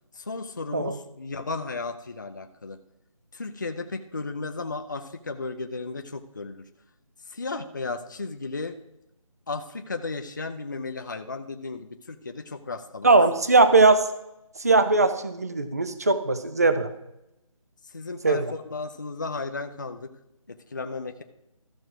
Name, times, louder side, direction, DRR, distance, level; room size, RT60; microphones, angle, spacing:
voice 1, 0.2-2.8 3.3-6.6 7.3-8.8 9.5-13.1 17.9-20.1 20.5-21.2, left 3 dB, 35° left, 6 dB, 0.5 m, -34 dB
voice 2, 13.0-14.0 14.6-16.9 18.2-18.4, right 3 dB, 30° right, 10 dB, 0.5 m, -19 dB
13.5 x 6.2 x 4.6 m, 0.87 s
figure-of-eight pair, 175°, 18 cm